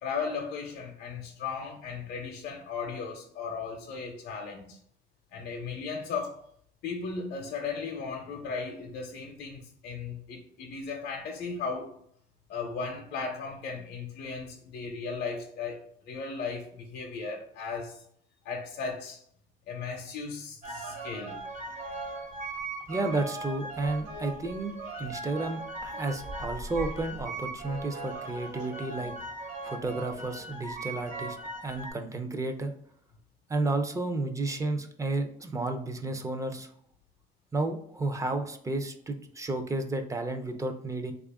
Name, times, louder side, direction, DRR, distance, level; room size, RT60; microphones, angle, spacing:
voice 1, 0.0-4.8 5.3-6.4 6.8-11.9 12.5-18.0 18.4-19.2 19.7-21.4, left 5 dB, 70° left, 0.6 m, -36 dB
sound 1, 20.6-31.9, right 2 dB, 45° right, 1.1 m, -39 dB
voice 2, 22.9-24.7 25.0-29.1 29.6-31.4 31.6-32.7 33.5-36.7 37.5-41.1, right 2 dB, 20° right, 0.5 m, -32 dB
3.3 x 2.4 x 3.5 m
cardioid pair, 110°, 17 cm